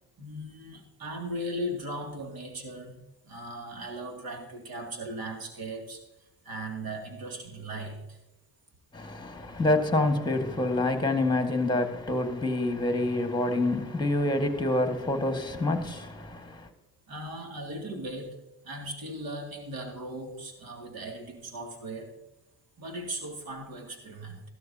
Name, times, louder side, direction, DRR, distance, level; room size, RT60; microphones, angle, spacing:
voice 1, 0.2-6.0 6.4-8.2 17.1-18.4 18.6-22.2 22.8-24.4, right 1 dB, 60° right, 2.6 m, -38 dB
voice 2, 8.9-16.7, left 2 dB, 10° left, 1.8 m, -27 dB
14.0 x 12.5 x 2.8 m
supercardioid pair, 65°, 40 cm